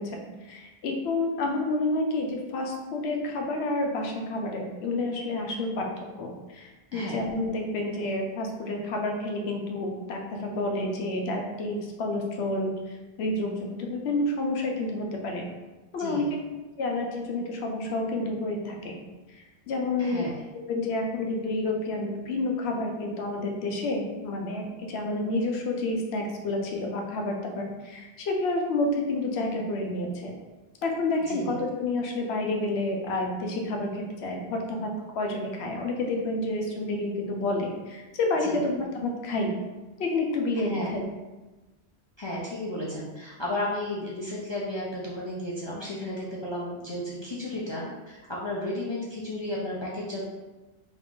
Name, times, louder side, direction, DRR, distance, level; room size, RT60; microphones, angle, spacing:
voice 1, 0.0-5.9 6.1-15.5 15.9-16.3 16.8-18.9 19.3-20.3 20.7-30.3 30.8-39.6 40.0-41.0, left 2 dB, 70° left, 1 dB, 0.9 m, -29 dB
voice 2, 6.9-7.2 16.0-16.3 20.0-20.3 31.3-31.6 38.4-38.6 40.7-40.9 42.2-47.9 48.4-50.2, left 1 dB, 40° left, -6 dB, 0.3 m, -33 dB
3.0 x 2.4 x 3.6 m, 1.1 s
omnidirectional pair, 1.1 m